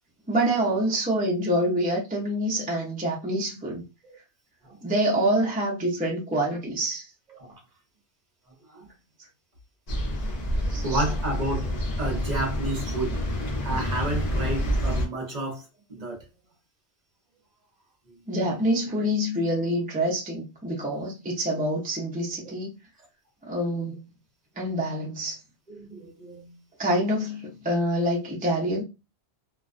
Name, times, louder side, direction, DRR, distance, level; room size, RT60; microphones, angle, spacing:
voice 1, 0.3-3.8 4.8-7.1 10.7-11.0 18.3-22.7 23.5-24.0 24.6-25.4 26.8-28.8, right 1 dB, 10° right, 0.4 m, -26 dB
sound 1, 9.9-15.1, equal, 40° left, 0.7 m, -28 dB
voice 2, 10.2-13.1 13.6-15.6 15.9-16.2 25.7-26.6, right 2 dB, 45° right, 0.8 m, -31 dB
2.4 x 2.2 x 2.4 m
omnidirectional pair, 1.2 m